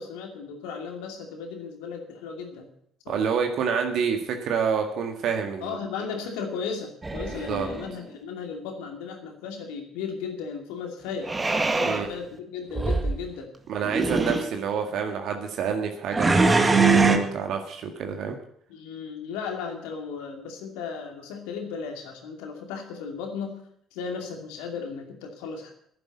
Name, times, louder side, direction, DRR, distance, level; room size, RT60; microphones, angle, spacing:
voice 1, 0.0-2.7 3.0-3.3 5.6-11.3 11.8-13.5 18.7-23.6 23.9-25.7, left 5 dB, 70° left, 3 dB, 2.6 m, -35 dB
voice 2, 3.1-5.8 7.3-7.7 11.8-12.1 13.7-18.4, right 6 dB, 60° right, 4 dB, 1.8 m, -28 dB
sound 1, 7.0-7.9 11.3-12.0 12.7-13.2 13.8-14.5 16.1-17.2, right 3 dB, 25° right, 1.9 m, -22 dB
11.0 x 10.5 x 8.3 m, 0.68 s
hypercardioid pair, 55°, 0 cm